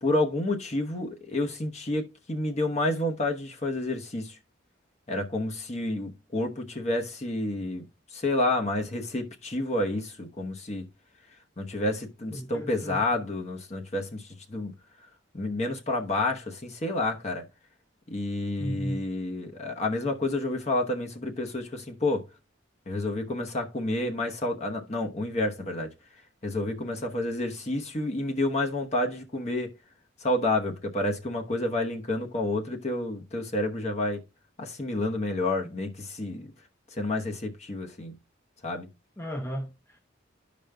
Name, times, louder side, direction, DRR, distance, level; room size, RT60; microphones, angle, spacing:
voice 1, 0.0-4.4 5.1-7.9 8.1-10.8 11.6-14.7 15.3-17.5 18.1-22.3 22.9-25.9 26.4-29.7 30.2-34.2 34.6-36.5 36.9-38.1 38.6-38.9, left 2 dB, 35° left, 1.0 m, -29 dB
voice 2, 12.3-13.0 18.6-19.0 39.2-40.0, equal, 15° left, 0.6 m, -35 dB
12.5 x 5.1 x 2.2 m
head